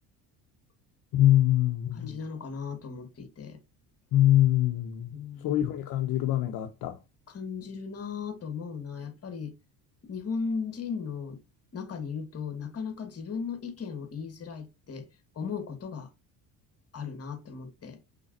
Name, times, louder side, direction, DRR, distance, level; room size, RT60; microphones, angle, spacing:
voice 1, 1.1-2.2 4.1-7.0, left 13 dB, 55° left, 0.7 m, -24 dB
voice 2, 1.9-3.6 5.1-5.6 7.3-9.6 10.0-11.4 11.7-15.1 15.3-16.1 16.9-18.0, left 5 dB, 35° left, 1.4 m, -36 dB
5.5 x 3.4 x 2.5 m
supercardioid pair, 85°, 42 cm